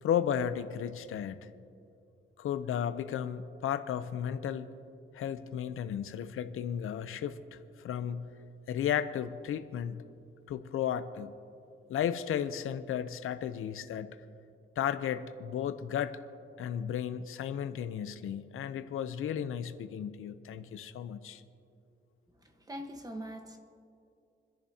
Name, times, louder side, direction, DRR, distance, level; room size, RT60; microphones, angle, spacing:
voice 1, 0.0-1.4 2.4-4.7 5.1-7.6 7.8-8.2 8.7-10.0 10.5-11.3 11.9-14.1 14.8-16.2 16.6-21.4, left 9 dB, 80° left, 11 dB, 0.7 m, -34 dB
voice 2, 22.4-23.6, equal, 15° right, 4 dB, 1.2 m, -42 dB
28.5 x 10.5 x 2.9 m, 2.5 s
cardioid pair, 125°, 21 cm